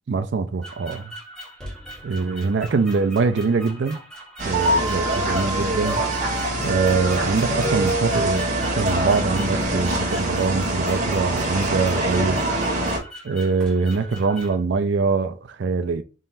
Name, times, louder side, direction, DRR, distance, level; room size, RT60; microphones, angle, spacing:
voice 1, 0.1-1.1 2.0-4.0 4.4-6.0 6.6-12.4 13.2-16.0, right 4 dB, 65° right, 0.4 m, -23 dB
sound 1, 0.6-14.6, equal, 5° left, 0.9 m, -41 dB
sound 2, 4.4-13.0, right 1 dB, 40° right, 1.1 m, -24 dB
4.2 x 3.8 x 2.6 m
head